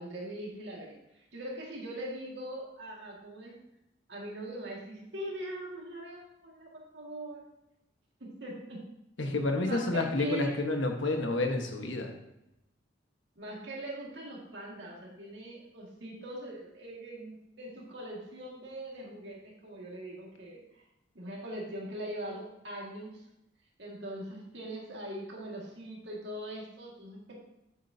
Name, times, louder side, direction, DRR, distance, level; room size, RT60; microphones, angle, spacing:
voice 1, 0.0-3.6 4.1-7.4 8.2-8.8 9.6-10.6 13.4-20.8 21.1-23.2 23.8-27.3, right 1 dB, 70° right, -2 dB, 1.9 m, -42 dB
voice 2, 9.2-12.1, left 2 dB, 85° left, 4 dB, 1.3 m, -29 dB
8.5 x 8.4 x 2.7 m, 0.86 s
head